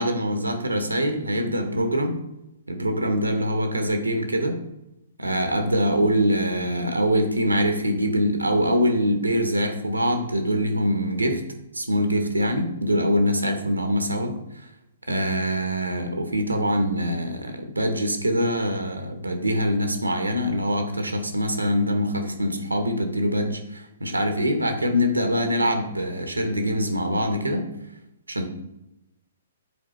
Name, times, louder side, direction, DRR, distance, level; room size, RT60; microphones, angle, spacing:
voice 1, 0.0-2.2 2.7-4.6 5.2-11.4 11.7-14.4 15.1-27.7 28.3-28.5, equal, 90° right, 6 dB, 0.9 m, -24 dB
8.2 x 4.1 x 3.1 m, 0.87 s
figure-of-eight pair, 125°, 0 cm